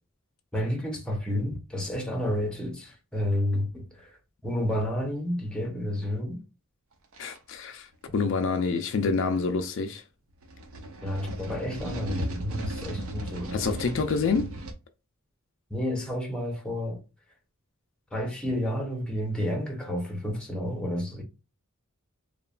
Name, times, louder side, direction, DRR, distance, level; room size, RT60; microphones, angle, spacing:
voice 1, 0.5-4.1 4.4-6.4 8.1-8.2 11.0-13.6 15.7-17.0 18.1-21.2, left 1 dB, 5° left, 0.6 m, -30 dB
sound 1, 7.1-7.4 8.1-8.3 10.4-14.7, right 1 dB, 70° right, 0.5 m, -36 dB
voice 2, 7.2-7.9 8.1-10.0 13.5-14.6, left 4 dB, 60° left, 0.4 m, -27 dB
3.0 x 2.2 x 2.3 m
head